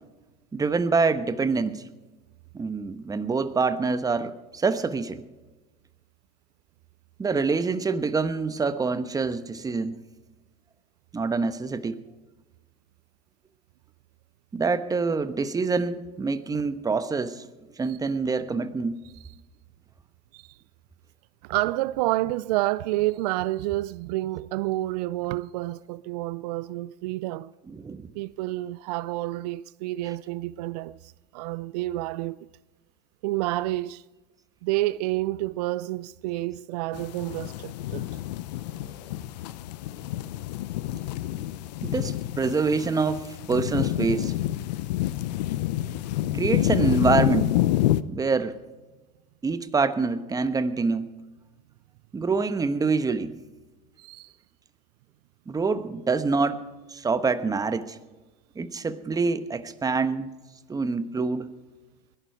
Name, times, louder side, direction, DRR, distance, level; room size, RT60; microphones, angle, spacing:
voice 1, 0.5-1.9 2.5-5.2 7.2-10.0 11.1-12.0 14.5-17.5 17.8-19.0 27.7-28.1 40.9-41.0 41.8-44.3 46.3-47.6 48.1-48.6 49.4-51.1 52.1-53.4 55.5-56.6 56.9-58.0 58.6-60.3 60.7-61.5, right 4 dB, 15° right, 1.1 m, -26 dB
voice 2, 21.4-27.5 28.1-32.4 33.2-34.0 34.6-38.1 54.0-54.3, right 17 dB, 75° right, 0.4 m, -29 dB
sound 1, 36.9-48.0, left 14 dB, 85° left, 0.6 m, -28 dB
21.0 x 11.5 x 4.6 m
supercardioid pair, 100°, 21 cm